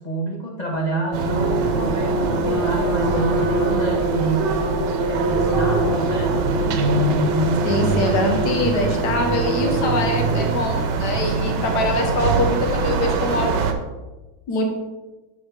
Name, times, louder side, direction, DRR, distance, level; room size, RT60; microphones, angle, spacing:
voice 1, 0.0-6.4, right 2 dB, 35° left, -1 dB, 0.7 m, -28 dB
sound 1, 0.7-10.3, right 2 dB, 35° right, 0.4 m, -25 dB
sound 2, 1.1-13.7, right 3 dB, 75° right, 1.5 m, -23 dB
voice 2, 7.6-13.6 14.5-14.6, left 2 dB, 70° left, 2 dB, 1.8 m, -23 dB
9.4 x 7.3 x 3.4 m, 1.2 s
omnidirectional pair, 1.9 m